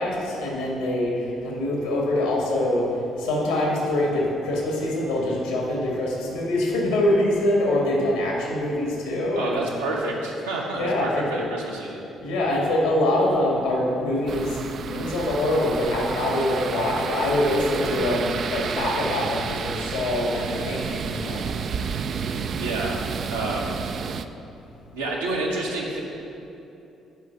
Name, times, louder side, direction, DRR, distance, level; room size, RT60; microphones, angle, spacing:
voice 1, 0.0-2.9 3.2-9.6 10.8-11.3 12.2-14.6 14.9-21.4, left 1 dB, 75° left, -2 dB, 1.8 m, -24 dB
voice 2, 9.3-12.0 22.5-23.0 23.3-23.7 24.9-26.0, right 2 dB, 80° right, -4 dB, 1.2 m, -29 dB
sound 1, 14.3-24.3, right 6 dB, 50° right, 0.4 m, -31 dB
8.1 x 5.2 x 5.8 m, 2.7 s
figure-of-eight pair, 45°, 0 cm